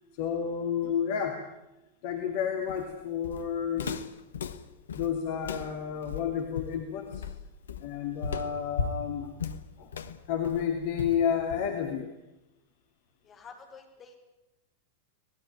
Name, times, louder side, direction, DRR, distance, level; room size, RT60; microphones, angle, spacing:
voice 1, 0.2-1.4 2.0-4.0 4.9-7.2 7.8-9.3 9.8-9.9 10.3-12.1, left 8 dB, 50° left, 4 dB, 2.7 m, -30 dB
Walk footsteps, 2.7-11.9, left 6 dB, 65° left, 1.2 m, -37 dB
voice 2, 13.2-14.2, left 5 dB, 25° left, 4 dB, 5.7 m, -49 dB
25.5 x 19.0 x 9.1 m, 0.97 s
figure-of-eight pair, 90°, 0 cm